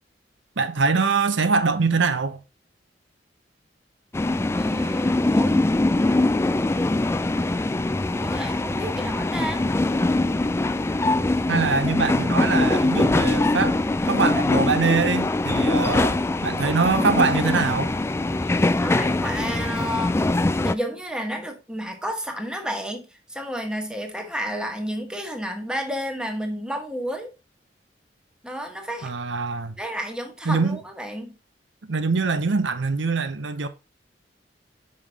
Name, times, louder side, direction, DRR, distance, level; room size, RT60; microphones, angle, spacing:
voice 1, 0.6-2.4 11.5-13.8 14.1-18.0 29.0-29.8 30.5-30.8 31.9-33.7, right 4 dB, 90° right, 0.7 m, -23 dB
sound 1, 4.1-20.7, left 2 dB, 15° left, 0.3 m, -22 dB
voice 2, 4.6-5.6 8.2-9.6 18.4-20.2 20.6-27.3 28.4-29.1 29.8-31.3, equal, 5° right, 1.1 m, -31 dB
5.5 x 5.4 x 3.3 m
head